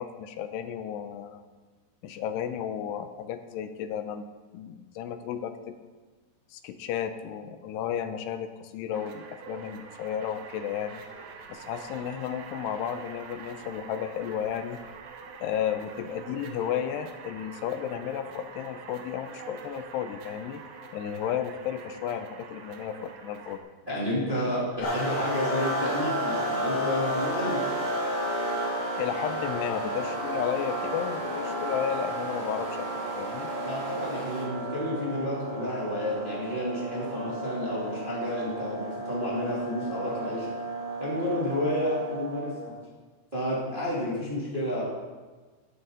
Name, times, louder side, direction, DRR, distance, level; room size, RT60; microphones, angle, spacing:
voice 1, 0.0-1.4 2.0-4.2 4.5-5.7 6.5-11.0 11.5-14.8 15.4-20.6 20.9-23.6 29.0-32.9 33.2-33.5, left 9 dB, 85° left, 9 dB, 2.7 m, -33 dB
sound 1, 8.9-23.6, right 5 dB, 85° right, 1.6 m, -45 dB
voice 2, 23.9-27.8 33.6-40.5 41.0-42.7 43.3-44.8, left 1 dB, 15° right, -7 dB, 2.2 m, -30 dB
sound 2, 24.8-42.7, right 1 dB, 55° left, 5.2 m, -32 dB
sound 3, 24.8-34.5, right 3 dB, 65° right, 3.7 m, -40 dB
14.5 x 11.0 x 3.9 m, 1.3 s
omnidirectional pair, 5.0 m